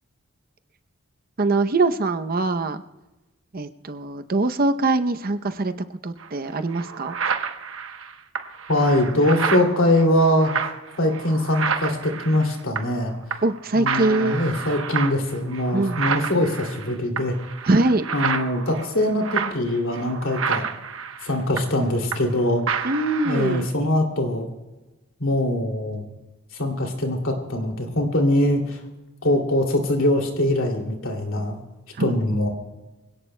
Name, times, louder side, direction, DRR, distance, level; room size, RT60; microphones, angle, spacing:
voice 1, 1.4-2.8 3.5-5.7 6.0-7.2 13.4-14.4 15.7-16.0 17.6-18.0 22.8-23.7 32.0-32.1, right 2 dB, 45° right, 10 dB, 0.7 m, -22 dB
sound 1, 6.2-6.3 6.7-13.0 13.3-13.6 13.9-22.4 22.7-23.7, right 6 dB, 85° right, 1.0 m, -30 dB
voice 2, 8.7-10.5 11.0-13.1 13.7-17.4 18.1-20.6 21.2-22.6 23.2-24.5 25.2-26.0 26.5-28.8 29.2-31.6 32.0-32.5, left 1 dB, 90° left, 3 dB, 2.6 m, -22 dB
25.0 x 17.0 x 2.2 m, 1.1 s
head